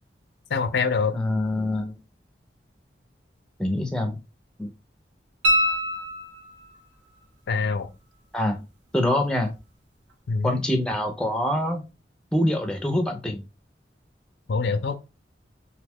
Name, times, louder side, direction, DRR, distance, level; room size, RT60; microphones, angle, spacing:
voice 1, 0.5-1.1 7.5-7.9 10.3-10.6 14.5-15.0, left 4 dB, 65° left, 0.4 m, -24 dB
voice 2, 1.1-2.0 3.6-4.2 4.6-4.7 8.3-8.7 8.9-9.5 10.4-11.8 12.3-13.4, left 1 dB, 5° left, 0.4 m, -25 dB
sound 1, 5.4-6.8 9.6-9.7, equal, 90° right, 0.7 m, -24 dB
2.9 x 2.2 x 3.4 m
head